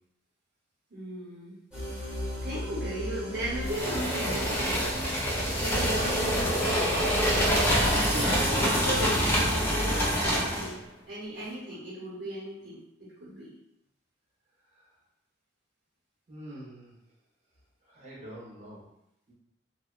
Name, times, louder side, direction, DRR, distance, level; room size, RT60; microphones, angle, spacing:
voice 1, 0.9-1.6 2.4-4.9 5.6-6.6 7.0-7.8 8.5-10.8 11.1-13.5, right 1 dB, 80° right, -10 dB, 0.9 m, -36 dB
sound 1, 1.7-8.0, equal, 5° right, 0.9 m, -37 dB
sound 2, 3.6-10.7, equal, 10° left, 0.5 m, -26 dB
voice 2, 8.1-8.8 16.3-16.9 17.9-18.8 19.3-19.4, right 1 dB, 35° right, -6 dB, 0.8 m, -37 dB
2.6 x 2.1 x 2.3 m, 0.82 s
head